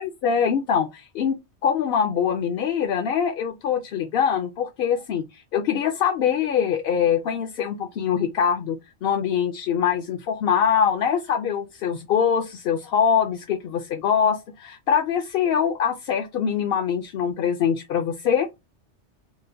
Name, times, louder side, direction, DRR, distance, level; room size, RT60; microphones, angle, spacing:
voice 1, 0.0-18.5, left 7 dB, 60° left, 0.7 m, -23 dB
4.2 x 2.1 x 2.5 m
omnidirectional pair, 1.2 m